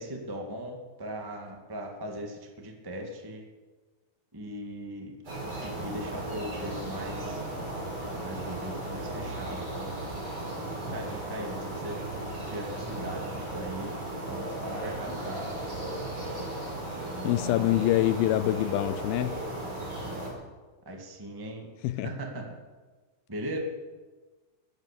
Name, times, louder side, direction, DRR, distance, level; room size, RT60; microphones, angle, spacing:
voice 1, 0.0-3.4 4.3-5.1 5.4-7.4 8.2-10.0 10.9-12.0 12.4-13.9 14.3-15.5 20.8-21.6 22.0-22.5 23.3-23.6, right 1 dB, 20° right, 0.5 m, -39 dB
sound 1, 5.2-20.3, right 1 dB, 40° right, 5.9 m, -36 dB
voice 2, 17.2-19.4 21.8-22.1, left 14 dB, 80° left, 2.2 m, -25 dB
22.5 x 8.7 x 6.9 m
omnidirectional pair, 4.7 m